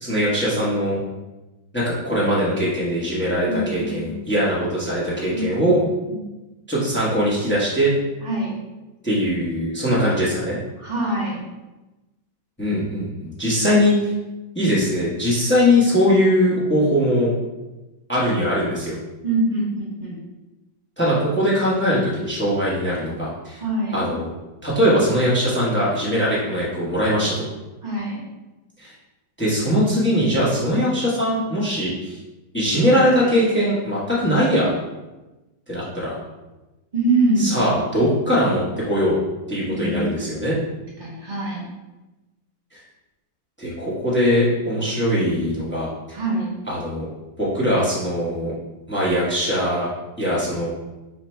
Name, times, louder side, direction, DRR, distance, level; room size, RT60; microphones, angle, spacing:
voice 1, 0.0-1.0 1.7-5.8 6.7-7.9 9.0-10.6 12.6-14.0 14.5-17.3 18.1-19.0 21.0-23.6 23.9-24.3 24.6-27.3 28.8-28.9 29.4-32.2 32.5-34.7 35.7-36.2 37.4-39.2 39.5-40.6 43.6-45.9 46.7-47.1 47.4-48.5 48.9-49.9 50.2-50.7, equal, 10° left, -7 dB, 0.5 m, -21 dB
voice 2, 3.4-4.2 5.3-5.7 6.1-6.2 8.2-8.5 9.9-10.0 10.8-11.4 19.2-20.2 23.6-24.0 27.8-28.2 36.9-37.5 39.7-40.2 41.0-41.6 46.1-46.5, right 2 dB, 30° right, -5 dB, 1.1 m, -24 dB
4.0 x 2.6 x 4.3 m, 1.1 s
omnidirectional pair, 2.0 m